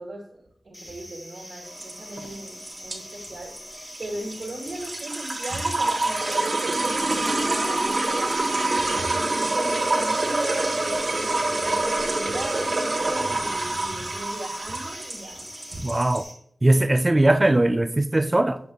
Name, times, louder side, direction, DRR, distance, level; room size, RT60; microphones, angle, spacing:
voice 1, 0.0-3.6 4.0-15.8, right 1 dB, 70° right, 1.6 m, -37 dB
sound 1, 0.7-16.3, left 1 dB, 35° left, 1.7 m, -42 dB
sound 2, 1.7-16.2, right 2 dB, 55° right, 1.1 m, -26 dB
voice 2, 15.8-16.2 16.6-18.6, right 1 dB, 25° right, 0.3 m, -20 dB
7.9 x 5.3 x 2.3 m
wide cardioid pair, 75°, 0 cm